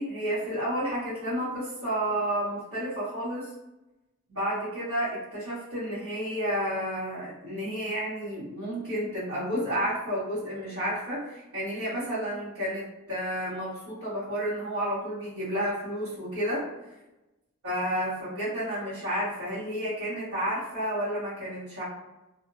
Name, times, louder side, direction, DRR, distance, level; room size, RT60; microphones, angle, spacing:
voice 1, 0.0-3.5 4.3-16.6 17.6-21.8, equal, 75° right, -14 dB, 1.4 m, -31 dB
2.6 x 2.1 x 2.6 m, 0.99 s
head